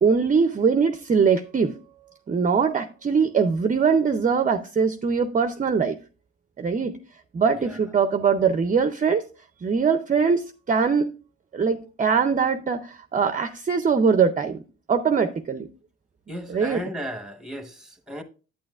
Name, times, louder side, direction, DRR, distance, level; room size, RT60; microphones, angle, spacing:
voice 1, 0.0-1.8 2.3-5.9 6.6-7.0 7.3-9.3 9.6-11.1 11.5-14.6 14.9-15.7 16.5-16.8, right 5 dB, 25° right, 0.5 m, -22 dB
voice 2, 16.3-18.2, equal, ahead, 1.0 m, -35 dB
8.7 x 8.5 x 2.4 m
cardioid pair, 90°, 30 cm